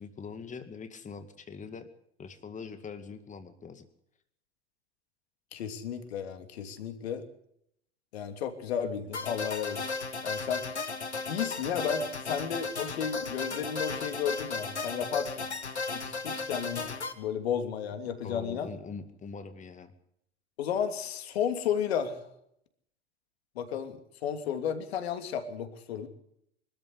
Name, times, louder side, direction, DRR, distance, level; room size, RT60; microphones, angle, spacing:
voice 1, 0.0-1.9 2.2-3.9 18.0-19.9, left 5 dB, 20° left, 9 dB, 2.2 m, -43 dB
voice 2, 5.5-7.2 8.1-9.9 10.2-10.6 11.3-15.4 15.9-16.9 17.2-18.7 20.6-22.3 23.5-26.1, left 8 dB, 65° left, 8 dB, 3.0 m, -33 dB
sound 1, 9.1-17.1, left 4 dB, 85° left, 2.0 m, -35 dB
25.0 x 13.5 x 8.2 m, 0.73 s
figure-of-eight pair, 80°, 33 cm